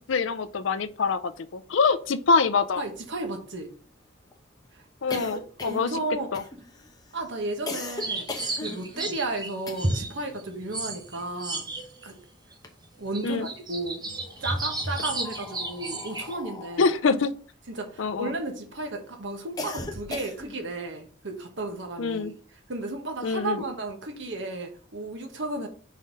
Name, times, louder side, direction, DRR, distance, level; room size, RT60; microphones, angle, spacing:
voice 1, 0.1-2.8 5.0-5.9 6.3-6.4 13.2-13.5 16.8-17.3 18.0-18.3 22.0-22.3 23.2-23.6, left 4 dB, 70° left, 0.5 m, -25 dB
sound 1, 2.3-2.4 2.7-10.2 10.5-12.0 12.4-13.3 14.1-18.6 19.0-20.7, left 2 dB, 20° left, 1.0 m, -40 dB
voice 2, 2.8-3.7 4.7-6.3 7.1-11.6 12.0-12.2 13.0-14.0 14.4-17.2 17.7-22.4 22.7-25.7, right 2 dB, 65° right, 1.3 m, -34 dB
sound 2, 8.0-12.1 12.5-12.6 13.0-16.3, right 2 dB, 20° right, 0.9 m, -33 dB
5.7 x 4.1 x 5.1 m
head